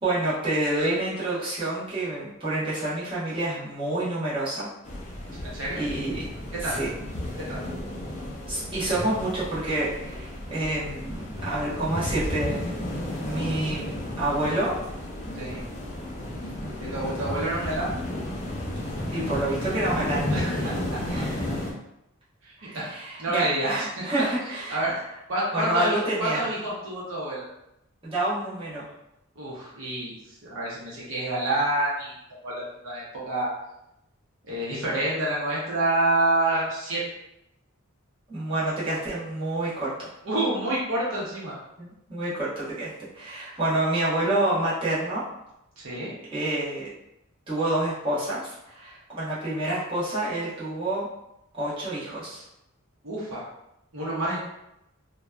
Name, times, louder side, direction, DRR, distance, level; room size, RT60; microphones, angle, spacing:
voice 1, 0.0-4.7 5.8-6.3 6.6-6.9 8.5-12.8 13.2-14.7 19.1-20.3 20.5-20.7 21.1-21.7 22.6-24.8 25.5-26.4 28.0-28.8 38.3-40.1 41.8-45.2 46.3-46.9 47.5-51.1 51.5-52.4, right 1 dB, 25° right, -10 dB, 0.9 m, -28 dB
sound 1, 4.8-21.7, left 1 dB, 35° left, 0.4 m, -33 dB
voice 2, 5.4-5.8 6.5-6.8 7.4-7.6 15.3-15.6 16.8-17.9 20.3-21.0 22.4-22.9 23.2-23.9 24.2-24.3 24.7-25.0 25.3-25.9 26.2-27.4 29.4-30.2 30.4-32.1 32.4-33.5 34.4-37.0 40.2-41.5 45.8-46.1 53.0-53.5 53.9-54.4, right 1 dB, 65° right, -6 dB, 0.7 m, -28 dB
2.6 x 2.2 x 2.2 m, 0.84 s
head